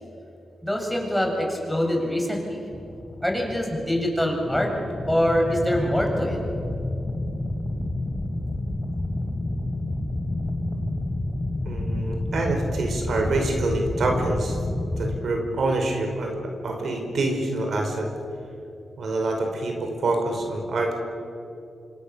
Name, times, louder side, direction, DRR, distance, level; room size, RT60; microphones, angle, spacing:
voice 1, 0.6-2.6 3.2-4.7 5.1-6.4, equal, 5° left, 0 dB, 7.5 m, -24 dB
sound 1, 2.7-15.2, left 1 dB, 20° left, 3.9 m, -29 dB
voice 2, 11.6-14.6 15.0-16.3 16.6-18.1 19.0-21.0, right 2 dB, 70° right, 3 dB, 5.2 m, -26 dB
27.0 x 26.0 x 7.1 m, 2.6 s
cardioid pair, 65°, 0 cm